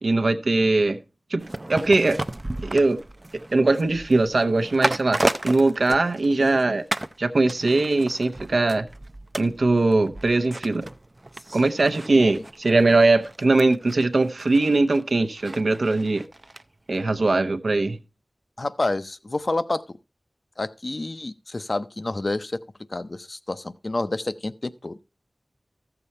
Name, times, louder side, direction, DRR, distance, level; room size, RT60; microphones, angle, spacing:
voice 1, 0.0-1.0 1.3-2.2 2.6-3.0 3.5-6.8 7.2-8.9 9.4-10.9 11.5-16.2 16.9-18.0, right 2 dB, 85° right, 0.8 m, -21 dB
sound 1, 1.4-6.6 6.9-7.2 7.5-16.6 16.9-17.0, right 1 dB, 35° right, 0.4 m, -33 dB
voice 2, 18.6-19.8 20.6-22.6 22.9-25.0, left 2 dB, 55° left, 0.6 m, -29 dB
14.0 x 6.9 x 4.2 m
wide cardioid pair, 65°, 0 cm